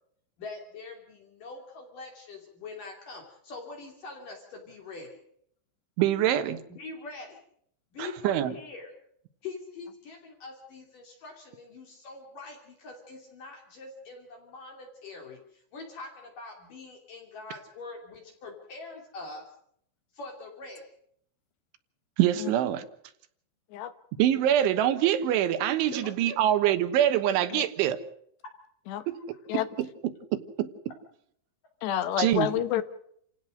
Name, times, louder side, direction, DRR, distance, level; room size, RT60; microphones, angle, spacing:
voice 1, 0.4-5.2 6.7-7.4 7.9-8.9 9.4-19.4 20.1-20.8 25.9-26.4 29.0-29.2, left 3 dB, 50° left, 2 dB, 4.1 m, -43 dB
voice 2, 6.0-6.6 8.0-8.5 22.2-22.8 24.2-28.0 29.1-29.2 29.5-29.9 30.3-30.7 32.2-32.5, right 11 dB, 85° right, 10 dB, 3.8 m, -25 dB
voice 3, 31.8-32.8, left 11 dB, 70° left, 11 dB, 3.3 m, -28 dB
29.0 x 17.0 x 6.4 m, 0.69 s
omnidirectional pair, 5.3 m